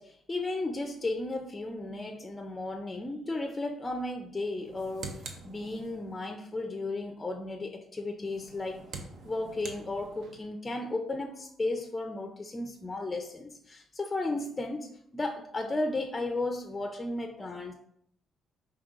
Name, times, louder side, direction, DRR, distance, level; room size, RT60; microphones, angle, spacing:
voice 1, 0.0-8.9 9.2-17.7, left 2 dB, 20° left, 4 dB, 0.4 m, -34 dB
sound 1, 4.6-6.2 8.2-10.5, right 4 dB, 70° right, 0.5 m, -45 dB
5.1 x 2.8 x 2.4 m, 0.68 s
cardioid pair, 90°, 0 cm